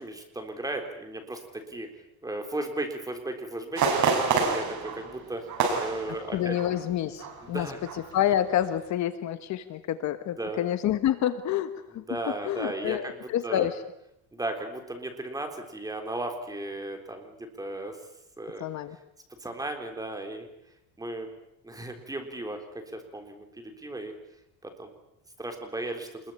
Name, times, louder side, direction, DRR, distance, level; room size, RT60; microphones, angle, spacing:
voice 1, 0.0-1.4 1.7-1.9 2.2-4.0 4.4-5.4 5.7-6.6 7.4-7.9 10.4-10.6 12.1-13.7 14.3-18.0 18.4-18.7 19.4-20.5 21.0-21.3 21.6-22.6 22.9-24.1 24.6-24.9 25.4-26.1, right 2 dB, 10° right, 5 dB, 3.8 m, -35 dB
sound 1, 3.8-6.8 7.1-7.4 7.8-8.2 8.6-8.7, right 5 dB, 50° right, 6.4 m, -28 dB
voice 2, 6.3-7.7 8.1-12.0 12.4-13.7 18.6-19.0, left 11 dB, 50° left, 11 dB, 1.4 m, -28 dB
27.0 x 21.5 x 8.8 m, 0.79 s
cardioid pair, 160°, 37 cm